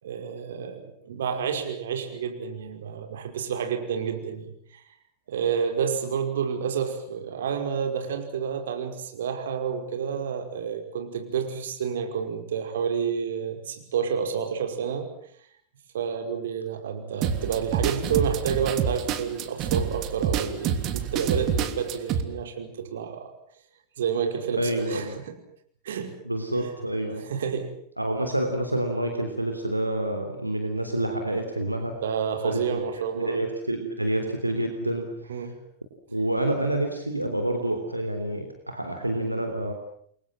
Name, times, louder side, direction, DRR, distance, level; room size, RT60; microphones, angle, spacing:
voice 1, 0.0-4.8 5.3-15.1 15.9-23.3 24.0-25.3 25.8-26.2 26.6-26.7 27.2-27.7 32.0-33.4 35.3-35.6, right 7 dB, 60° right, 5 dB, 5.3 m, -29 dB
sound 1, 17.2-22.2, right 8 dB, 35° right, 3.0 m, -27 dB
voice 2, 24.5-25.1 26.2-27.3 28.0-32.0 32.4-32.8 33.1-35.5 36.1-39.7, right 1 dB, 85° right, 5 dB, 3.4 m, -28 dB
29.5 x 23.5 x 7.7 m, 0.65 s
figure-of-eight pair, 90°, 0 cm